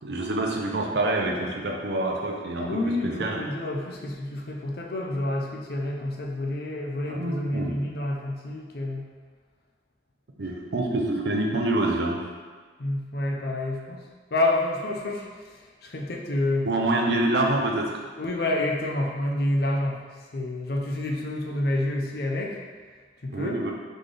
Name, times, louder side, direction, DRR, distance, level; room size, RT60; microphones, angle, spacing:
voice 1, 0.0-3.4 7.1-7.8 10.4-12.2 16.6-18.0 23.3-23.7, right 2 dB, 65° right, 1 dB, 0.6 m, -26 dB
voice 2, 2.6-9.1 12.8-14.0 14.3-15.5 15.8-16.7 18.2-20.0 20.3-22.6 23.2-23.6, left 1 dB, 55° left, 0 dB, 0.6 m, -28 dB
4.0 x 3.8 x 3.3 m, 1.5 s
head